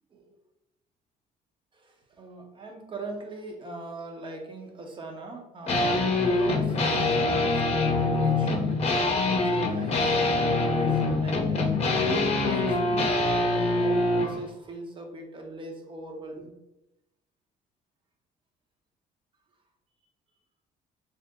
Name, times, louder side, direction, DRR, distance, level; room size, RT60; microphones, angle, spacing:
voice 1, 1.7-10.1 10.7-11.7 12.2-16.6, right 2 dB, 30° right, 2 dB, 0.9 m, -40 dB
sound 1, 5.7-14.4, left 2 dB, 40° left, 0.8 m, -24 dB
3.4 x 2.9 x 3.5 m, 0.92 s
cardioid pair, 110°, 17 cm